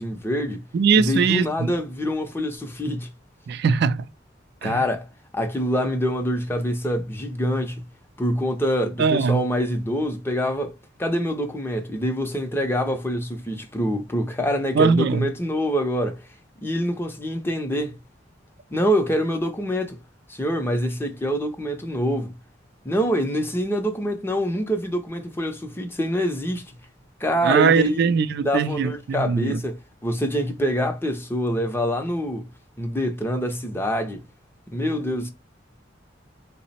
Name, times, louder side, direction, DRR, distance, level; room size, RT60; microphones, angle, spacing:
voice 1, 0.0-0.6 1.0-3.1 4.6-5.1 5.3-7.8 8.2-16.3 16.6-18.0 18.7-20.0 20.3-22.4 22.8-26.7 27.2-28.1 28.4-32.5 32.8-34.2 34.7-35.3, equal, 10° left, 0.5 m, -25 dB
voice 2, 0.7-1.7 3.5-4.1 4.6-4.8 9.0-9.4 14.7-15.3 27.4-29.6, right 5 dB, 60° right, 0.3 m, -21 dB
3.7 x 2.0 x 4.1 m
head